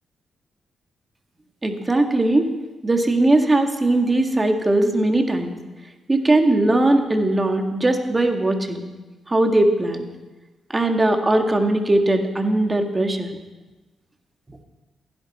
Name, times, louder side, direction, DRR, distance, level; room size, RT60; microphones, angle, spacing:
voice 1, 1.6-2.5 2.8-5.6 6.1-8.9 9.3-10.1 10.7-13.3 14.5-14.6, right 2 dB, 25° right, 5 dB, 1.8 m, -19 dB
15.5 x 10.5 x 4.3 m, 1.2 s
supercardioid pair, 55°, 0 cm